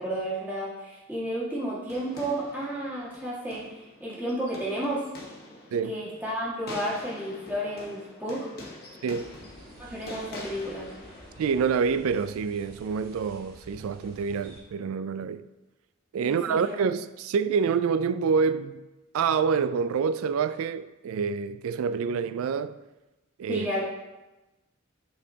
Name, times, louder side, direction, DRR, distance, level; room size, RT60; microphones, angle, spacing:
voice 1, 0.0-5.1 5.8-8.5 9.8-10.9 16.2-16.7 23.5-23.8, right 1 dB, 10° right, 1.8 m, -32 dB
sound 1, 1.9-12.2, left 2 dB, 45° left, 1.1 m, -45 dB
sound 2, 9.2-14.6, right 1 dB, 45° right, 2.0 m, -51 dB
voice 2, 11.4-15.5 16.1-18.8 19.1-22.7 23.4-23.7, right 6 dB, 75° right, 0.3 m, -27 dB
11.0 x 4.2 x 2.8 m
head